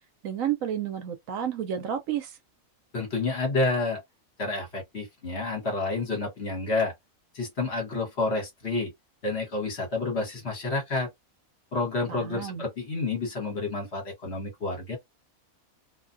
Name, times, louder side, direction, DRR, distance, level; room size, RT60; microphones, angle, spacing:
voice 1, 0.2-2.4 12.1-12.7, right 9 dB, 70° right, 1.0 m, -31 dB
voice 2, 2.9-4.0 4.4-6.9 7.3-8.9 9.2-11.1 11.7-15.0, left 3 dB, 50° left, 1.4 m, -29 dB
2.7 x 2.3 x 2.5 m
omnidirectional pair, 1.5 m